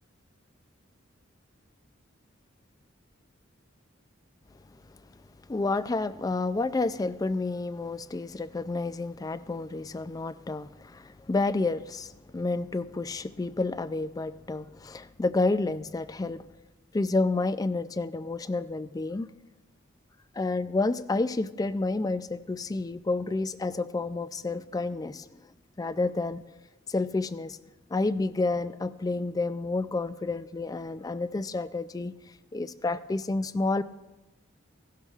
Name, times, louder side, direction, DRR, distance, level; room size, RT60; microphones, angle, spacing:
voice 1, 5.5-16.4 16.9-19.3 20.4-25.3 25.8-26.4 26.9-27.6 27.9-32.1 32.5-33.8, left 3 dB, 20° left, 14 dB, 0.3 m, -30 dB
16.5 x 12.5 x 2.4 m, 1.0 s
head